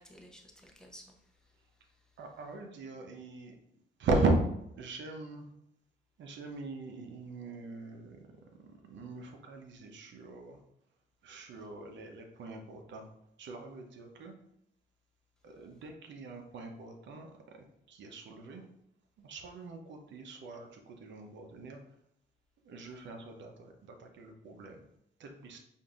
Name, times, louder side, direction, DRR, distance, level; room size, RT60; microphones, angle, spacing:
voice 1, 0.0-2.2 11.6-11.7, equal, 5° left, 0.7 m, -56 dB
voice 2, 2.2-3.6 4.0-4.4 4.8-5.5 6.2-10.6 11.2-13.1 13.4-14.3 15.4-18.7 19.2-21.8 22.6-24.8 25.2-25.6, right 3 dB, 65° right, 0.8 m, -38 dB
5.2 x 2.6 x 2.5 m
cardioid pair, 90°, 20 cm